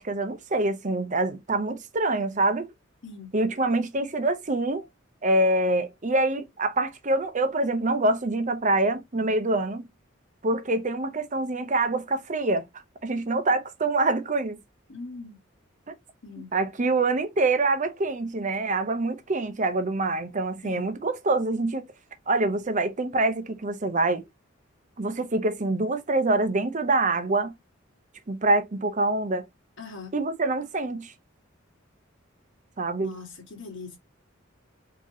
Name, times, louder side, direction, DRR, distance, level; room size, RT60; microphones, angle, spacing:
voice 1, 0.0-2.7 3.3-4.9 5.2-9.8 10.4-12.6 13.0-14.6 16.5-21.8 22.3-24.2 25.0-27.5 28.3-29.4 30.1-31.1 32.8-33.2, right 2 dB, 40° right, 0.7 m, -25 dB
voice 2, 14.9-15.4 16.2-16.5 20.6-20.9 29.8-30.1 33.0-34.0, left 4 dB, 65° left, 1.6 m, -41 dB
4.7 x 3.0 x 2.8 m
head